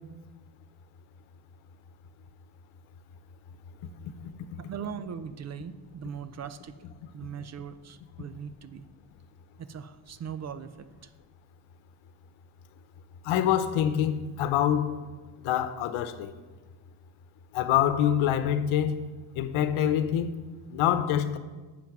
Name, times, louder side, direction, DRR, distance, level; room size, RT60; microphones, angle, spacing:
voice 1, 4.6-6.9 7.1-8.9 9.6-11.1, right 7 dB, 35° right, 0.5 m, -40 dB
voice 2, 13.2-15.0 15.4-16.3 17.5-19.0 19.3-20.3 20.7-21.4, left 10 dB, 90° left, 0.9 m, -25 dB
10.5 x 7.7 x 6.0 m
cardioid pair, 150°, 48 cm